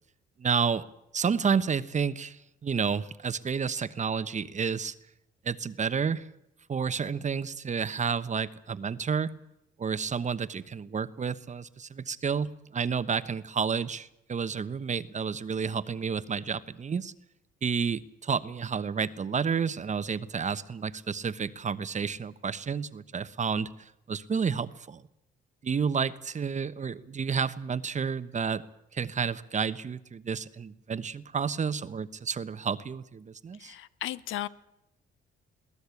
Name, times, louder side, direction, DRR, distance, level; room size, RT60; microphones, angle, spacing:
voice 1, 0.4-0.8 1.1-4.9 5.4-6.3 6.7-9.3 9.8-17.1 17.6-25.0 25.6-28.6 28.9-33.7, right 6 dB, 35° right, 14 dB, 1.1 m, -30 dB
voice 2, 33.5-34.5, left 14 dB, 85° left, 17 dB, 0.9 m, -35 dB
22.0 x 17.0 x 8.4 m, 0.83 s
cardioid pair, 90°, 20 cm